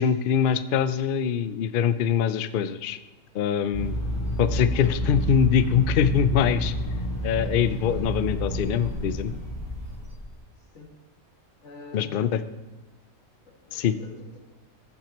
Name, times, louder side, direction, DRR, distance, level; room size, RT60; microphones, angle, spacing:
voice 1, 0.0-3.0 3.3-3.9 4.4-6.7 7.2-9.3 11.9-12.4 13.7-14.0, left 8 dB, 85° left, 12 dB, 0.4 m, -23 dB
sound 1, 3.7-10.3, equal, 30° left, 3.2 m, -30 dB
voice 2, 11.6-12.2 13.4-14.4, left 2 dB, 55° left, -1 dB, 2.4 m, -46 dB
14.5 x 9.0 x 3.0 m, 1.1 s
omnidirectional pair, 1.5 m